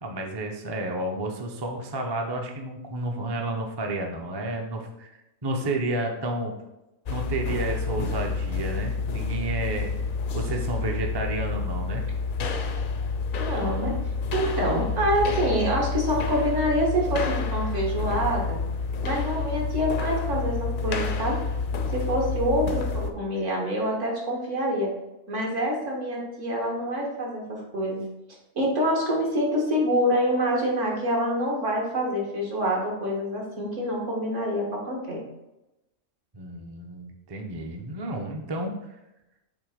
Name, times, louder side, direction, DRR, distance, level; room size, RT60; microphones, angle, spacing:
voice 1, 0.0-5.1 5.4-6.5 7.1-9.9 10.3-12.0 36.3-38.9, right 2 dB, 25° right, 2 dB, 0.5 m, -31 dB
sound 1, 7.1-23.1, left 4 dB, 55° left, 0.6 m, -29 dB
voice 2, 13.4-14.0 14.3-18.6 19.0-21.4 21.9-24.9 25.3-28.0 28.6-35.2, equal, 65° right, -2 dB, 1.9 m, -26 dB
7.1 x 2.8 x 5.0 m, 0.92 s
omnidirectional pair, 1.4 m